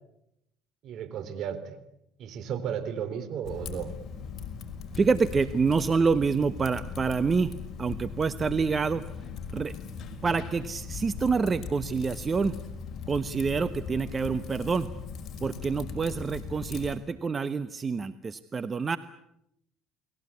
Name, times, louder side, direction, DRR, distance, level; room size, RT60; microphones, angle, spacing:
voice 1, 0.8-1.8 2.2-3.9, right 8 dB, 60° right, 12 dB, 3.8 m, -34 dB
Typing, 3.4-17.0, left 5 dB, 45° left, 5.4 m, -39 dB
voice 2, 5.0-7.5 7.8-9.0 9.5-9.7 10.2-12.6 13.1-14.9 15.4-19.0, right 5 dB, 30° right, 13 dB, 1.1 m, -27 dB
29.5 x 20.5 x 8.6 m, 0.81 s
supercardioid pair, 90°, 0 cm